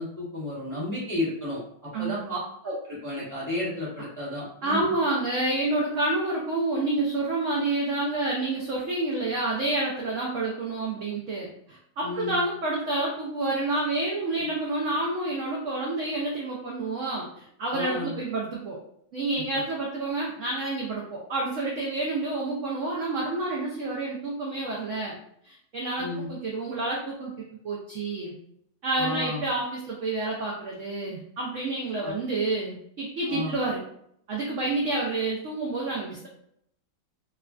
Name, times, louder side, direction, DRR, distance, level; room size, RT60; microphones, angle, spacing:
voice 1, 0.0-4.8 12.0-12.4 17.7-18.1 26.0-26.3 29.0-29.4 32.0-32.2 33.3-33.5, left 1 dB, 15° left, -9 dB, 0.7 m, -32 dB
voice 2, 1.9-2.4 4.6-18.8 19.1-25.2 25.4-27.3 27.6-28.3 28.8-33.8 34.3-36.3, right 2 dB, 75° right, -3 dB, 0.7 m, -29 dB
3.2 x 2.4 x 2.3 m, 0.70 s
omnidirectional pair, 1.9 m